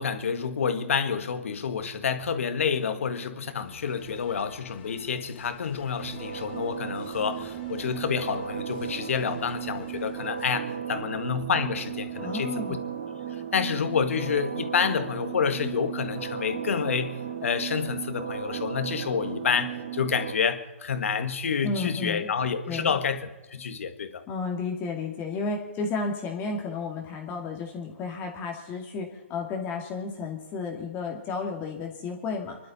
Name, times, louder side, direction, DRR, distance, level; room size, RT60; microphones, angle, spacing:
voice 1, 0.0-12.6 13.3-24.2, left 6 dB, 75° left, 9 dB, 1.7 m, -28 dB
sound 1, 3.7-10.5, left 7 dB, 50° left, 2.5 m, -53 dB
sound 2, 6.0-20.3, right 9 dB, 40° right, 2.2 m, -35 dB
voice 2, 12.2-12.8 21.6-22.3 22.7-23.0 24.3-32.6, left 4 dB, 25° left, 1 dB, 2.1 m, -32 dB
25.5 x 12.0 x 4.2 m, 1.1 s
hypercardioid pair, 135°, 7 cm